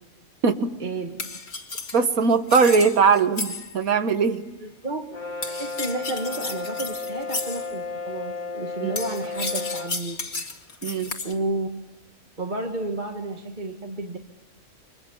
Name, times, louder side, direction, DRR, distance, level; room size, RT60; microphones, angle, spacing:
voice 1, 0.8-1.2 4.6-5.1 5.5-10.2 11.2-11.7 12.4-14.2, right 2 dB, 30° right, 3 dB, 1.7 m, -31 dB
sound 1, 1.2-3.9 5.4-7.7 9.0-11.3, left 3 dB, 50° left, 2.5 m, -33 dB
voice 2, 1.9-4.4 8.8-8.9 10.8-11.1, right 5 dB, 75° right, 10 dB, 1.9 m, -20 dB
Brass instrument, 5.1-10.0, left 4 dB, 35° left, 1.2 m, -33 dB
29.5 x 25.0 x 7.1 m, 1.0 s
omnidirectional pair, 1.5 m